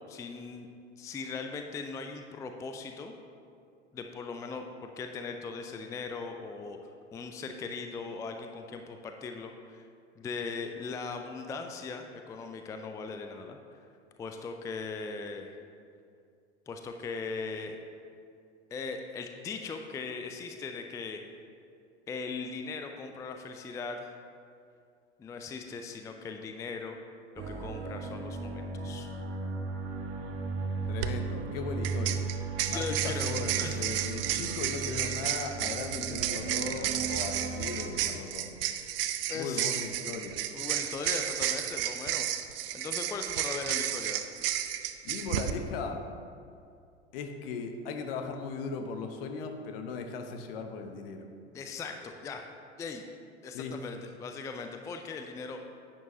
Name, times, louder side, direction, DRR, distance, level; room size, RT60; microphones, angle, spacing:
voice 1, 0.1-0.7 1.0-3.1 3.9-6.8 7.1-9.9 10.2-13.6 14.2-15.6 16.7-17.8 18.7-21.2 22.1-24.1 25.2-27.0 27.5-29.1 32.7-33.3 33.6-33.8 38.1-38.3 39.3-39.8 40.5-42.3 42.7-44.3 51.5-52.4 52.8-53.0 53.4-55.6, left 4 dB, 10° left, 5 dB, 0.4 m, -39 dB
sound 1, 27.4-37.9, right 4 dB, 35° right, 1.2 m, -36 dB
sound 2, 30.8-31.1 31.8-45.5, right 12 dB, 55° right, 0.6 m, -32 dB
voice 2, 30.9-32.2 32.7-38.5 39.3-40.4 45.0-46.0 47.1-51.3 53.5-53.8, left 4 dB, 55° left, 6 dB, 1.0 m, -38 dB
10.5 x 8.7 x 2.7 m, 2.3 s
figure-of-eight pair, 80°, 34 cm